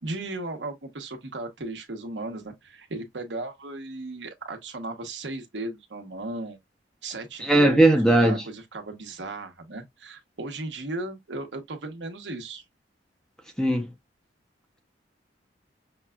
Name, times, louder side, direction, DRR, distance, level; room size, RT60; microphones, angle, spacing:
voice 1, 0.0-6.6 7.0-12.6, right 2 dB, 75° right, 1.0 m, -36 dB
voice 2, 7.4-8.4 13.6-13.9, right 1 dB, 5° left, 0.6 m, -18 dB
5.9 x 2.3 x 2.2 m
head